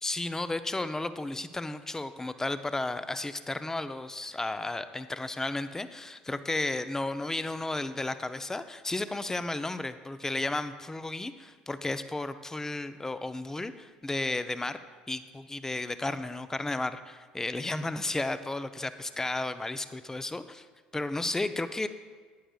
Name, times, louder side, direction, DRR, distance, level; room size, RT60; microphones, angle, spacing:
voice 1, 0.0-14.8 15.1-20.7 20.9-21.9, left 2 dB, 10° left, 12 dB, 0.6 m, -33 dB
16.0 x 9.9 x 2.4 m, 1.5 s
figure-of-eight pair, 60°, 4 cm